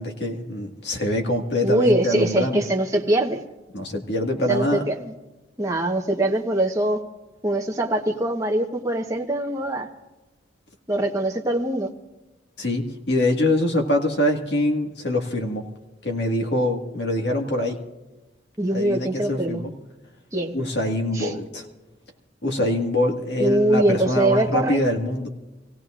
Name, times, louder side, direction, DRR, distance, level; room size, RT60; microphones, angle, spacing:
voice 1, 0.0-2.6 3.7-4.8 12.6-15.6 16.0-17.8 18.7-19.7 20.5-21.7 22.4-25.3, left 1 dB, 65° left, 2 dB, 1.9 m, -24 dB
voice 2, 1.6-3.4 4.5-5.1 5.6-7.0 7.4-9.9 10.9-11.9 18.6-19.6 20.3-20.5 21.1-21.3 23.4-24.8, right 1 dB, 15° right, 1 dB, 1.2 m, -22 dB
27.5 x 17.0 x 2.5 m, 1.1 s
head